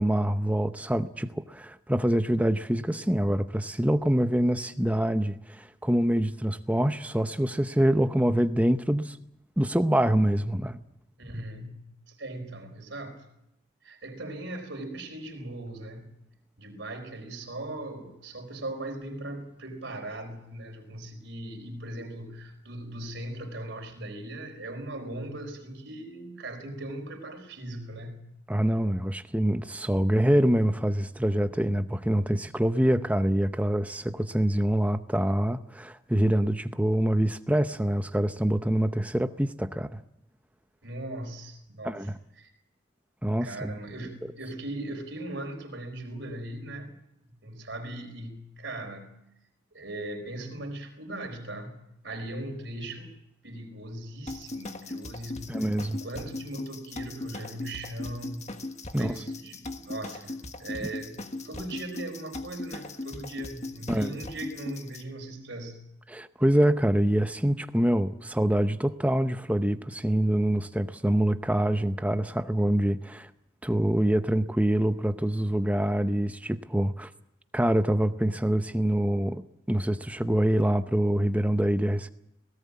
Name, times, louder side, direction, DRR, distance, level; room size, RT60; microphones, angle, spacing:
voice 1, 0.0-9.2 9.6-10.8 28.5-40.0 41.8-42.2 43.2-43.7 55.5-56.0 58.9-59.2 63.9-64.2 66.1-73.3 73.6-77.1 77.5-82.1, right 1 dB, 5° right, 0.7 m, -25 dB
voice 2, 11.2-13.3 13.8-16.1 16.6-28.2 40.8-42.1 42.4-42.5 43.4-46.9 47.3-49.2 49.7-53.2 53.4-58.5 58.9-65.8, right 1 dB, 60° right, 4.5 m, -39 dB
sound 1, 54.3-65.0, left 2 dB, 35° left, 1.4 m, -38 dB
18.0 x 17.5 x 8.5 m
head